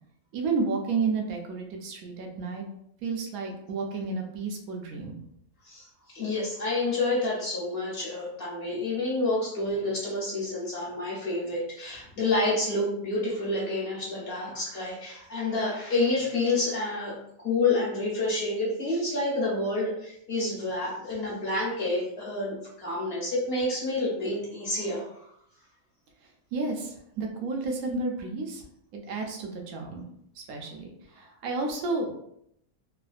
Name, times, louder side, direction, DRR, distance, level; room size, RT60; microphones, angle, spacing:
voice 1, 0.3-2.6 3.0-5.2 26.5-28.6 28.9-30.0 30.4-32.2, right 4 dB, 85° right, 2 dB, 1.1 m, -31 dB
voice 2, 5.6-25.3, left 2 dB, 45° left, -6 dB, 1.1 m, -29 dB
3.2 x 2.1 x 2.4 m, 0.73 s
omnidirectional pair, 1.5 m